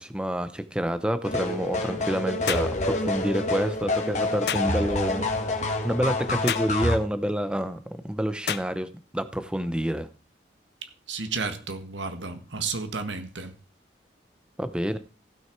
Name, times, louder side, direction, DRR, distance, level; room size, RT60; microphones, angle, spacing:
voice 1, 0.0-5.3 5.8-10.1 14.6-15.0, equal, 5° right, 0.7 m, -28 dB
sound 1, 1.2-7.0, left 2 dB, 40° left, 1.6 m, -27 dB
sound 2, 2.5-2.7 4.5-4.7 6.5-6.7 8.5-8.7, left 8 dB, 60° left, 0.5 m, -29 dB
voice 2, 10.8-13.6, right 4 dB, 90° right, 1.6 m, -32 dB
16.0 x 6.3 x 4.5 m
head